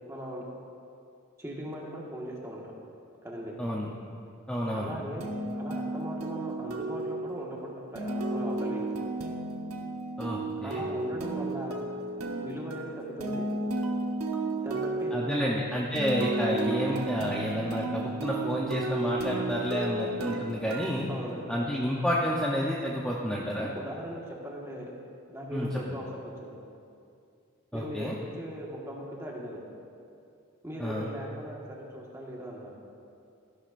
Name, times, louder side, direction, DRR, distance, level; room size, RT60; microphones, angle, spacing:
voice 1, 0.1-0.4 1.4-2.7 3.2-3.6 4.7-9.1 10.6-11.8 12.4-13.5 14.6-15.6 21.1-21.6 23.7-24.9 25.3-26.6 27.7-29.6 30.6-32.7, equal, 15° right, -3 dB, 1.5 m, -39 dB
voice 2, 3.6-3.9 4.5-4.9 10.2-10.8 15.1-21.1 21.5-23.7 25.5-25.8 27.7-28.1 30.8-31.1, equal, 5° left, -4 dB, 0.7 m, -30 dB
sound 1, 5.2-21.9, right 2 dB, 85° right, 1.0 m, -33 dB
15.0 x 11.5 x 2.5 m, 2.5 s
head